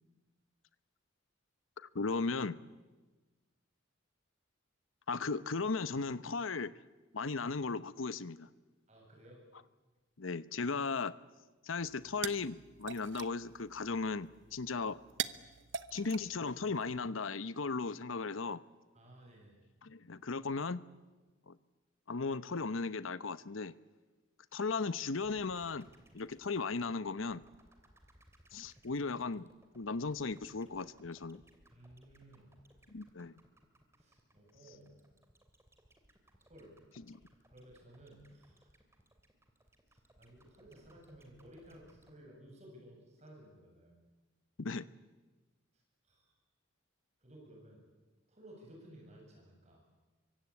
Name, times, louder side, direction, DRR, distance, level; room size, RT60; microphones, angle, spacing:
voice 1, 1.8-2.6 5.1-6.7 7.1-8.5 10.2-11.1 11.6-15.0 15.9-18.6 19.8-20.8 21.5-21.6 22.1-23.7 24.5-25.9 26.1-27.4 28.5-29.5 29.7-31.4 32.9-33.4 37.1-37.2 44.6-44.9, left 4 dB, 85° left, 16 dB, 0.9 m, -36 dB
voice 2, 8.9-9.4 18.9-19.6 31.7-32.5 34.0-34.9 36.4-36.7 37.5-38.7 39.9-44.0 46.0-46.3 47.2-47.8 48.3-49.8, right 1 dB, 35° right, 0 dB, 8.0 m, -56 dB
sound 1, 11.8-17.1, right 8 dB, 65° right, 0.9 m, -45 dB
sound 2, 25.2-42.2, right 1 dB, 15° right, 2.9 m, -64 dB
26.0 x 24.0 x 8.7 m, 1.3 s
head